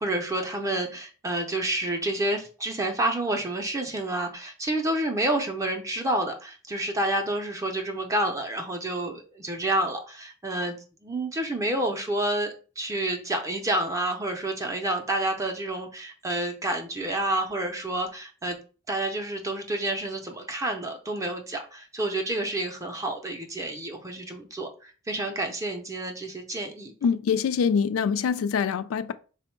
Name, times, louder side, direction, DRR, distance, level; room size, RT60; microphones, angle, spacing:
voice 1, 0.0-10.8 11.0-18.6 18.9-26.9, right 1 dB, 15° right, 0.4 m, -29 dB
voice 2, 27.0-29.1, left 6 dB, 85° left, 0.3 m, -24 dB
3.5 x 2.1 x 4.3 m
head